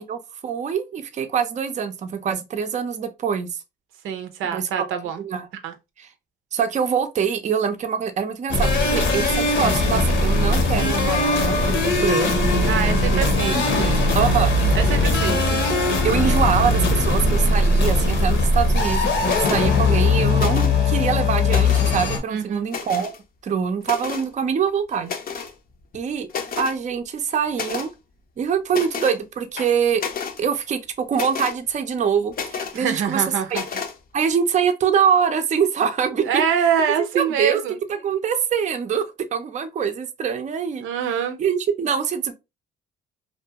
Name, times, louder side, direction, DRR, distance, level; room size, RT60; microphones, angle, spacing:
voice 1, 0.0-3.5 4.4-4.9 5.2-5.4 6.0-6.1 6.5-13.2 13.5-14.5 15.2-15.6 16.0-23.2 23.4-25.1 25.9-26.3 26.6-27.9 28.4-30.0 30.4-33.2 33.5-33.6 34.1-36.4 37.1-37.6 37.9-39.0 39.3-40.9 41.4-42.3, right 7 dB, 35° right, 0.4 m, -24 dB
voice 2, 4.0-5.2 5.6-5.7 12.7-13.6 14.7-15.4 22.3-22.7 32.7-33.6 36.2-37.8 40.8-41.4, right 8 dB, 85° right, 0.5 m, -24 dB
sound 1, 8.5-22.2, left 2 dB, 70° left, 0.8 m, -20 dB
sound 2, 19.2-19.6 20.3-20.9 21.3-22.0 22.7-23.2 23.8-24.3 25.0-25.5 25.9-26.0 26.3-26.8 27.5-27.9 28.7-29.2 29.6-30.4 31.1-31.6 32.3-32.8 33.5-33.9, left 6 dB, 45° left, 0.5 m, -31 dB
2.6 x 2.2 x 2.7 m
cardioid pair, 90°, 20 cm